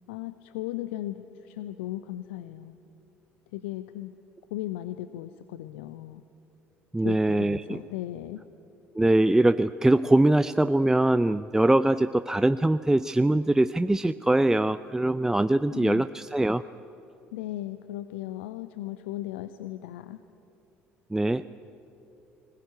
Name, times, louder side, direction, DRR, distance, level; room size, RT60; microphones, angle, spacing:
voice 1, 0.1-2.8 3.5-4.2 4.5-6.2 7.0-8.4 15.7-16.1 17.3-20.2, left 14 dB, 65° left, 12 dB, 0.7 m, -37 dB
voice 2, 6.9-7.8 9.0-16.6 21.1-21.4, right 1 dB, 10° right, 14 dB, 0.5 m, -22 dB
21.0 x 20.0 x 9.5 m, 2.8 s
figure-of-eight pair, 55°, 7 cm